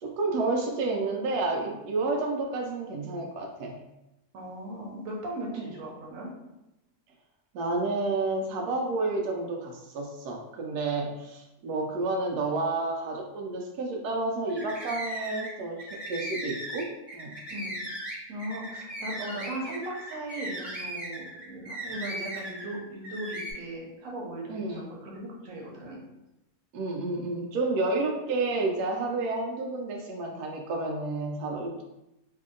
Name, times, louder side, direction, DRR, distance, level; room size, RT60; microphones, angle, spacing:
voice 1, 0.0-3.8 5.5-5.7 7.5-17.3 24.5-24.9 26.7-31.8, right 3 dB, 90° right, 1 dB, 1.1 m, -30 dB
voice 2, 4.3-6.3 17.5-17.8 18.3-26.0, right 1 dB, 65° right, -2 dB, 1.2 m, -38 dB
sound 1, 14.5-15.5 15.8-22.7 23.0-23.5, right 1 dB, ahead, 1.2 m, -37 dB
2.8 x 2.7 x 3.7 m, 0.93 s
omnidirectional pair, 1.6 m